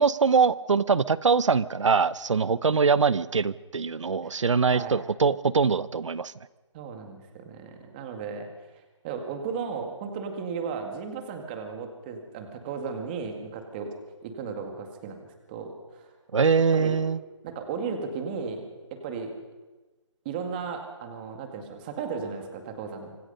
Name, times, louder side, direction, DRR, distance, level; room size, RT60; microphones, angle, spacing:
voice 1, 0.0-6.3 16.3-17.2, right 5 dB, 75° right, 17 dB, 0.9 m, -23 dB
voice 2, 6.7-8.5 9.0-16.1 16.7-17.0 17.4-19.4 20.3-23.2, right 5 dB, 20° right, 4 dB, 2.0 m, -35 dB
26.0 x 20.5 x 5.5 m, 1.2 s
hypercardioid pair, 170°, 16 cm